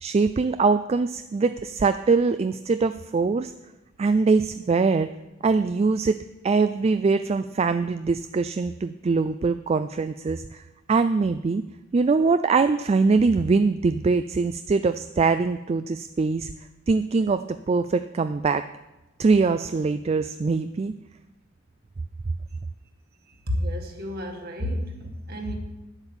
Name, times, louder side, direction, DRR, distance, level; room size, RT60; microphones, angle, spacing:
voice 1, 0.0-3.5 4.0-5.1 5.4-6.2 6.4-10.6 10.9-11.6 11.9-16.5 16.9-18.7 19.2-20.9, right 4 dB, 30° right, 11 dB, 0.3 m, -22 dB
voice 2, 23.5-25.5, left 1 dB, 50° right, 2 dB, 2.0 m, -30 dB
10.0 x 8.0 x 7.1 m, 1.0 s
head